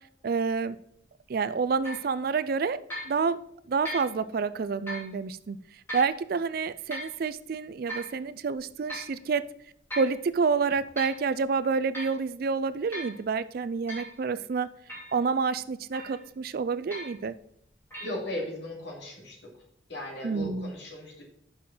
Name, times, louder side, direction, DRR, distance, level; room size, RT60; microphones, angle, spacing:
voice 1, 0.2-0.8 1.3-3.4 3.7-5.6 5.9-9.5 9.9-14.7 15.1-17.3 20.2-20.7, right 5 dB, 50° right, 15 dB, 0.4 m, -28 dB
sound 1, 1.8-2.1 2.9-3.1 3.8-4.1 4.9-5.1 5.9-6.1 6.9-7.2 7.9-8.2 8.9-9.1 9.9-10.2 10.7-11.2 11.9-12.2 12.9-13.2 13.9-14.1 14.9-15.2 15.9-16.3 16.9-17.2 17.9-18.1, equal, 15° left, 2.6 m, -38 dB
voice 2, 18.0-19.4 19.9-21.2, left 1 dB, 65° left, -1 dB, 2.5 m, -37 dB
6.5 x 5.7 x 5.5 m, 0.69 s
head